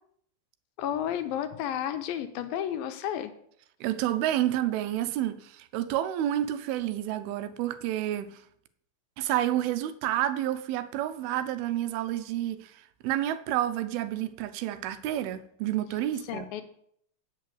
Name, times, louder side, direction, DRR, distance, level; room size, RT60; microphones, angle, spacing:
voice 1, 0.8-3.3 16.3-16.6, left 10 dB, 80° left, 2.3 m, -32 dB
voice 2, 3.8-8.4 9.2-16.5, right 12 dB, 85° right, 2.6 m, -29 dB
8.3 x 5.8 x 7.6 m
omnidirectional pair, 4.4 m